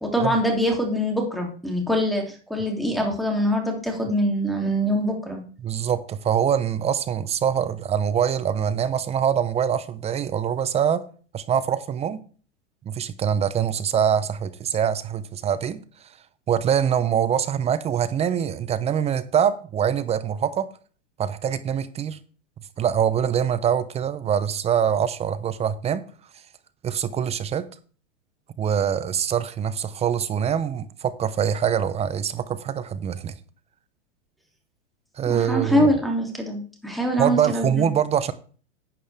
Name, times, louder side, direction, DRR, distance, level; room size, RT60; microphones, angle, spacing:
voice 1, 0.0-5.4 35.2-37.9, equal, ahead, 2.9 m, -24 dB
voice 2, 5.6-11.0 11.3-12.2 12.9-15.8 16.5-20.7 21.2-22.2 22.8-26.0 26.8-27.7 28.6-33.3 35.2-35.9 37.2-38.3, right 8 dB, 15° right, 0.6 m, -24 dB
11.5 x 8.5 x 3.5 m
hypercardioid pair, 125°, 36 cm